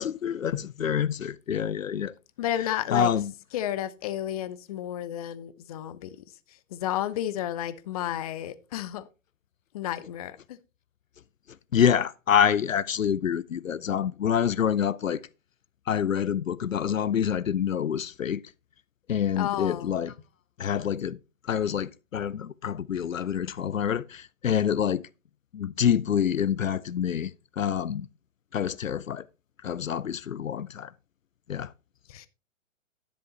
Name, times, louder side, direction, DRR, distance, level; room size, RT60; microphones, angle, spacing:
voice 1, 0.0-2.1 2.9-3.3 11.7-15.2 15.9-18.4 19.1-20.1 20.6-21.2 21.5-25.0 25.5-28.1 28.5-29.3 29.6-30.9 31.5-31.7, left 8 dB, 80° left, 0.6 m, -27 dB
voice 2, 2.4-3.1 3.5-6.1 6.7-9.1 9.7-10.6 19.4-19.9 32.1-32.3, left 12 dB, 30° left, 0.7 m, -32 dB
11.0 x 10.0 x 2.9 m
figure-of-eight pair, 125°, 39 cm